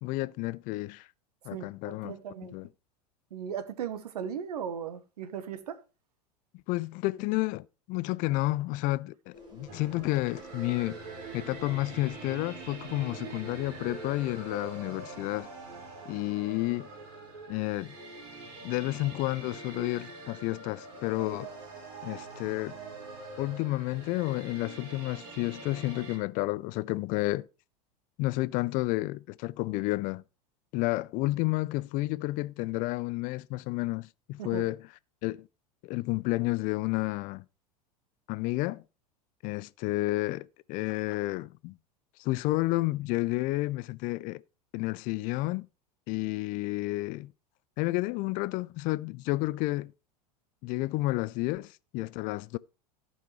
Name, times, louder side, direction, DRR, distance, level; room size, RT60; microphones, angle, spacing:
voice 1, 0.0-1.1 1.5-2.1 2.5-2.7 6.5-11.0 11.3-15.5 16.1-16.9 17.5-18.0 18.6-21.5 22.0-22.8 23.4-27.5 28.2-30.2 30.7-34.8 35.2-35.5 35.8-37.4 38.3-38.8 39.4-41.8 42.2-44.4 44.7-45.7 46.1-47.3 47.8-49.9 50.6-52.6, left 20 dB, 40° left, 0.4 m, -31 dB
voice 2, 1.5-2.5 3.3-5.8 34.4-34.6, right 8 dB, 75° right, 1.1 m, -37 dB
sound 1, 9.3-14.5, equal, 20° right, 4.0 m, -52 dB
sound 2, 9.7-26.2, right 3 dB, 50° right, 3.9 m, -44 dB
15.0 x 5.5 x 3.2 m
hypercardioid pair, 90°, 20 cm